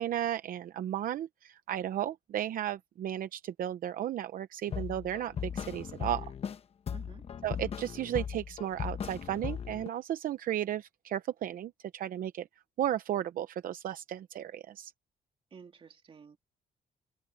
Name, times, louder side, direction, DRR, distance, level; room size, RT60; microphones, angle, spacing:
voice 1, 0.0-6.3 7.4-12.5 12.8-14.9, right 11 dB, 65° right, 0.7 m, -34 dB
sound 1, 4.7-6.6 6.9-9.9, left 7 dB, 40° left, 0.9 m, -38 dB
voice 2, 6.9-7.3 15.5-16.4, right 6 dB, 35° right, 2.5 m, -52 dB
open air
cardioid pair, 150°, 15 cm